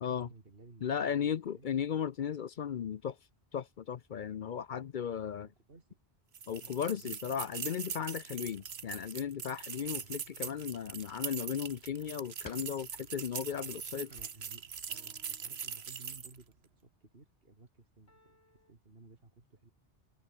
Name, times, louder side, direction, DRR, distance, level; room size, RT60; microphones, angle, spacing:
voice 1, 0.2-1.7 4.4-4.9 5.4-6.0 6.5-6.6 6.9-7.6 7.9-8.1 8.4-8.5 10.0-10.2 13.9-14.6 14.9-16.5 16.8-18.4 18.7-19.7, right 3 dB, 70° right, 2.9 m, -57 dB
voice 2, 0.8-3.2 3.5-5.5 6.5-14.1, left 8 dB, 55° left, 0.7 m, -36 dB
sound 1, 6.3-16.4, right 7 dB, 90° right, 1.4 m, -42 dB
sound 2, 9.8-15.1, left 2 dB, 20° left, 1.7 m, -59 dB
sound 3, 14.9-16.4 18.1-18.7, left 1 dB, 85° left, 8.1 m, -70 dB
omnidirectional pair, 1.0 m